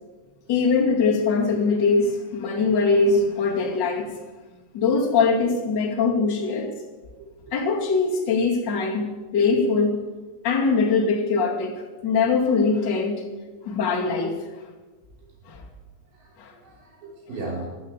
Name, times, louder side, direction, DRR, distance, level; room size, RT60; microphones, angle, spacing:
voice 1, 0.5-4.1 4.7-6.7 7.5-10.0 10.4-13.2 13.6-14.4 15.5-15.6 16.4-16.5, left 4 dB, 35° left, -1 dB, 2.0 m, -22 dB
voice 2, 6.1-6.5 7.4-7.5 7.8-7.9 13.5-13.6 16.1-17.7, right 3 dB, 70° right, -2 dB, 6.7 m, -37 dB
14.5 x 12.0 x 8.2 m, 1.2 s
omnidirectional pair, 5.2 m